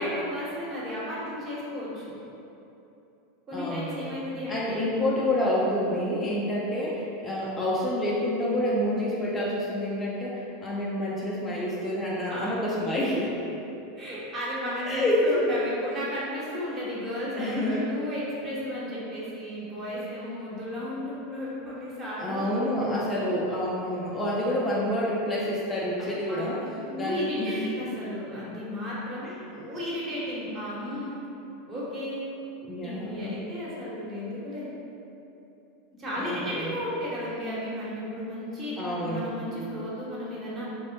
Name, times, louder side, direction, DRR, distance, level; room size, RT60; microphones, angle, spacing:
voice 1, 0.0-2.0 3.5-4.9 12.3-12.5 14.0-22.4 26.0-26.5 26.9-31.2 31.7-32.2 32.8-34.7 36.0-40.7, left 1 dB, 30° right, -8 dB, 1.0 m, -34 dB
voice 2, 3.5-4.2 4.5-13.3 14.9-15.5 17.4-17.9 22.2-26.6 27.0-27.9 32.7-33.4 36.2-36.8 38.8-39.3, left 1 dB, 20° left, -6 dB, 0.4 m, -28 dB
3.3 x 2.1 x 2.7 m, 2.9 s
hypercardioid pair, 90°, 0 cm